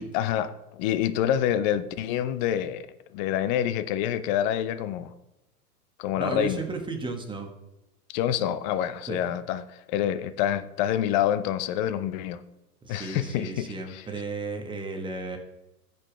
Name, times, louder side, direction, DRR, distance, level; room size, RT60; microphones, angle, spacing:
voice 1, 0.0-2.9 3.1-5.1 6.0-6.6 8.1-12.4 12.9-14.0, left 10 dB, 30° left, 13 dB, 0.5 m, -27 dB
voice 2, 6.2-7.5 9.1-9.3 12.8-15.4, right 3 dB, 10° right, 3 dB, 1.5 m, -34 dB
14.0 x 5.4 x 3.4 m, 0.92 s
hypercardioid pair, 110°, 47 cm